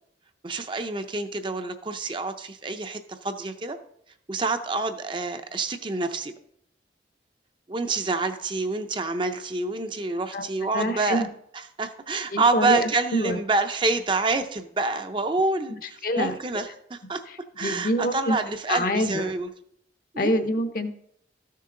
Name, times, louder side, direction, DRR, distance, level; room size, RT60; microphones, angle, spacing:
voice 1, 0.4-3.8 4.3-6.3 7.7-11.2 11.8-17.2 17.6-19.5 20.1-20.4, right 3 dB, 30° right, 8 dB, 0.5 m, -27 dB
voice 2, 10.7-11.3 12.3-13.4 16.0-16.3 17.6-18.4 18.7-19.3 20.2-20.9, equal, 55° left, 9 dB, 0.7 m, -25 dB
13.5 x 6.6 x 3.8 m, 0.72 s
head